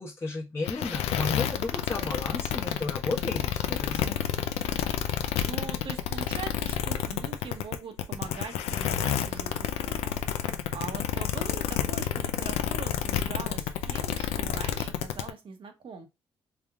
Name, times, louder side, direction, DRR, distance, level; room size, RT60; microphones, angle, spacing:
voice 1, 0.0-4.2, left 3 dB, 25° left, 1.0 m, -34 dB
sound 1, 0.6-15.3, left 10 dB, 80° left, 0.4 m, -29 dB
voice 2, 5.4-10.2 10.7-16.1, right 5 dB, 55° right, 1.1 m, -41 dB
3.5 x 3.3 x 2.5 m
supercardioid pair, 60°, 10 cm